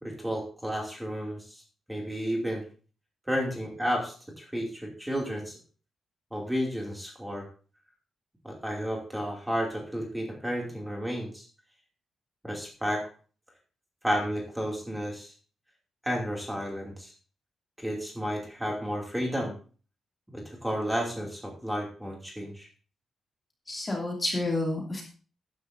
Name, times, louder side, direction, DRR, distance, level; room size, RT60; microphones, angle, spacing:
voice 1, 0.0-1.6 1.9-2.6 3.3-5.5 6.3-7.5 8.4-11.4 12.4-13.0 14.0-15.3 16.0-17.1 17.8-19.5 20.3-22.7, equal, 5° right, -1 dB, 2.7 m, -32 dB
voice 2, 23.7-25.0, left 2 dB, 20° left, -1 dB, 2.7 m, -29 dB
14.0 x 10.5 x 2.7 m, 0.39 s
wide cardioid pair, 180°, 0 cm